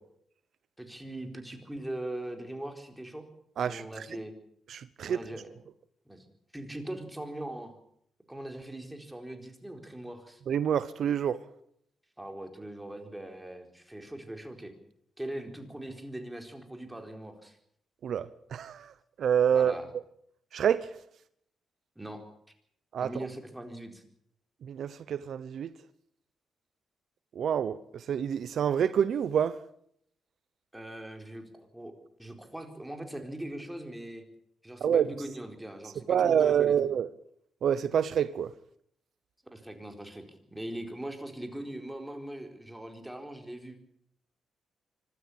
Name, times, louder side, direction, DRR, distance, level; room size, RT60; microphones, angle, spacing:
voice 1, 0.8-3.2 3.6-4.3 5.1-5.5 6.1-6.3 6.5-7.8 8.3-10.4 12.2-14.7 15.2-17.6 19.5-19.9 22.0-22.3 23.0-24.0 30.7-31.4 31.7-31.9 32.2-34.2 34.6-36.8 39.5-43.8, right 1 dB, 10° right, 4.3 m, -41 dB
voice 2, 3.6-4.1 4.7-5.2 10.5-11.4 18.0-18.9 19.2-19.7 20.5-21.0 22.9-23.1 24.6-25.7 27.3-29.6 34.8-35.1 36.1-37.1 37.6-38.5, right 8 dB, 70° right, 0.8 m, -27 dB
25.0 x 13.0 x 8.7 m
cardioid pair, 70°, 0 cm